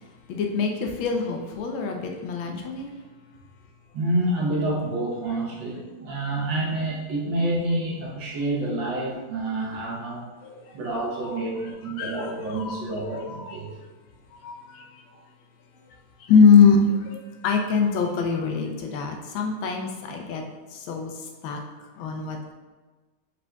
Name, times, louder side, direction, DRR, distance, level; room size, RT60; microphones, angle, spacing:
voice 1, 0.3-2.9 10.4-10.7 11.2-11.3 11.9-12.8 13.1-13.6 14.3-14.9 16.2-20.4 20.7-21.1 21.4-21.6 22.0-22.5, left 5 dB, 85° left, 2 dB, 1.5 m, -23 dB
voice 2, 3.9-10.3 10.7-13.7, right 1 dB, 75° right, -3 dB, 1.7 m, -28 dB
4.9 x 4.7 x 2.3 m, 1.3 s
omnidirectional pair, 2.1 m